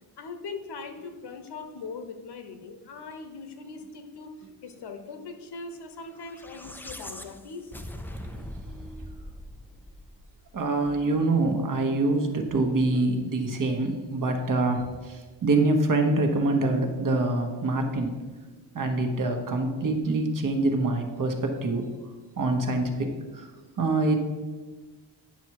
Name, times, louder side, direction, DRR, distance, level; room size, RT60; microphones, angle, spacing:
voice 1, 0.2-4.3 4.6-7.7, left 4 dB, 60° left, 6 dB, 1.0 m, -40 dB
sound 1, 6.2-10.6, left 1 dB, 5° left, 0.3 m, -41 dB
voice 2, 10.5-18.1 18.7-21.8 22.4-23.4 23.8-24.2, right 2 dB, 45° right, 3 dB, 1.1 m, -25 dB
9.3 x 5.8 x 4.7 m, 1.3 s
wide cardioid pair, 140°, 46 cm